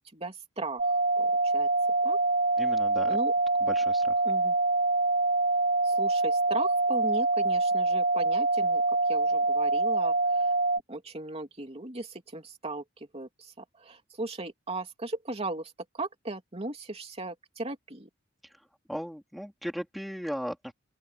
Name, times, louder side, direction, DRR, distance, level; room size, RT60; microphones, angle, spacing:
voice 1, 0.1-1.7 2.0-2.2 3.1-3.3 4.2-4.5 5.8-8.8 9.1-10.5 10.9-12.8 13.1-18.1, right 2 dB, 30° right, 3.1 m, -37 dB
sound 1, 0.8-10.8, right 2 dB, 45° right, 0.9 m, -25 dB
voice 2, 2.6-3.2 3.6-4.1 18.9-20.7, equal, ahead, 3.7 m, -36 dB
open air
head